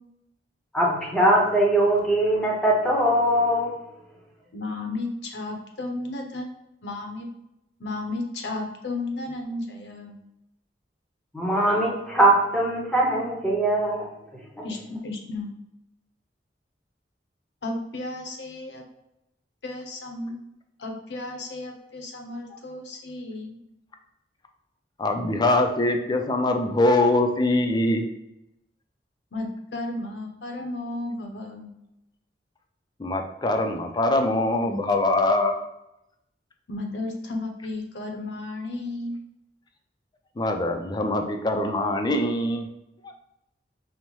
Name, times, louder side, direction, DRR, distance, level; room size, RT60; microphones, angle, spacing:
voice 1, 0.7-3.7 11.3-14.1, right 1 dB, 5° left, -2 dB, 0.8 m, -21 dB
voice 2, 4.5-6.4 6.8-7.3 7.8-10.2 14.6-15.5 17.6-18.8 19.6-20.4 20.8-23.6 29.3-31.7 36.7-39.1, left 2 dB, 80° left, 2 dB, 0.7 m, -33 dB
voice 3, 25.0-28.1 33.0-35.5 40.4-42.7, left 2 dB, 25° left, 5 dB, 0.4 m, -23 dB
5.3 x 2.1 x 3.0 m, 0.86 s
head